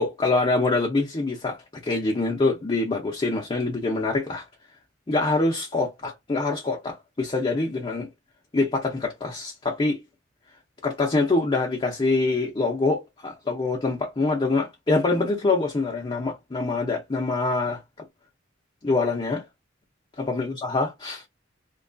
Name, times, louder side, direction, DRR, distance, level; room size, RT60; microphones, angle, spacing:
voice 1, 0.0-4.4 5.1-8.1 8.5-10.0 10.8-17.8 18.8-19.4 20.2-21.2, left 3 dB, 25° left, 0.5 m, -25 dB
2.8 x 2.3 x 2.5 m
head